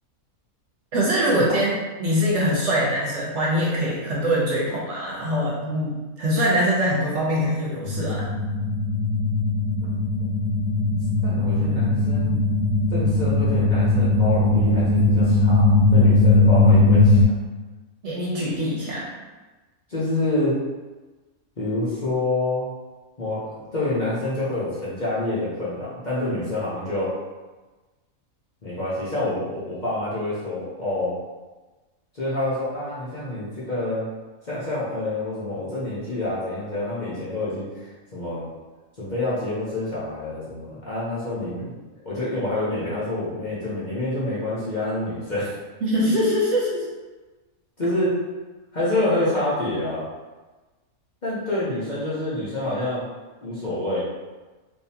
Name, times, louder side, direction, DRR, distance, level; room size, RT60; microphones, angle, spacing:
voice 1, 0.9-8.2 18.0-19.0 45.8-46.8, equal, 60° right, -5 dB, 1.0 m, -23 dB
sound 1, 7.9-17.2, left 2 dB, 70° left, 0.9 m, -19 dB
voice 2, 10.9-12.3 12.9-17.3 19.9-20.5 21.6-22.7 23.2-27.1 28.6-31.2 32.2-34.1 34.4-38.5 39.0-41.8 42.0-45.5 47.8-48.1 48.7-50.0 51.2-53.0 53.4-54.0, left 2 dB, 40° left, -9 dB, 0.9 m, -27 dB
3.6 x 2.9 x 2.8 m, 1.2 s
omnidirectional pair, 1.5 m